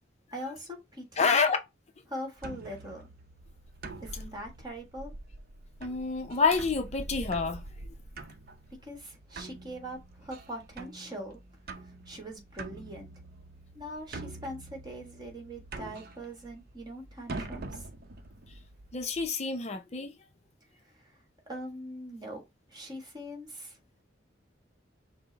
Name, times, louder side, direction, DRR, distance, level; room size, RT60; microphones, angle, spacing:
voice 1, 0.3-1.4 2.1-3.1 4.0-5.1 8.8-11.4 12.0-13.1 13.7-17.9 20.8-21.2 21.5-22.4 22.7-23.8, equal, 25° right, 1.4 m, -42 dB
voice 2, 1.2-1.6 5.8-7.6 18.9-20.1, left 4 dB, 35° left, 0.5 m, -27 dB
sound 1, 2.4-19.3, right 2 dB, 55° right, 0.6 m, -45 dB
5.9 x 2.0 x 3.9 m
head